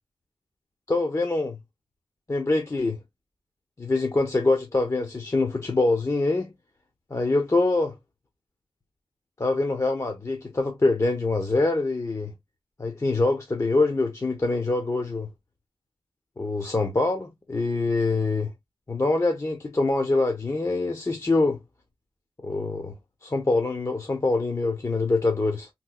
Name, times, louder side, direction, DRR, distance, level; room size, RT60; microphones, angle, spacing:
voice 1, 0.9-1.6 2.3-3.0 3.8-6.5 7.1-7.9 9.4-12.3 12.8-15.3 16.4-18.5 18.9-21.6 22.4-22.9 23.2-25.7, left 2 dB, 35° left, 0.7 m, -24 dB
3.2 x 3.1 x 2.2 m
cardioid pair, 55°, 9 cm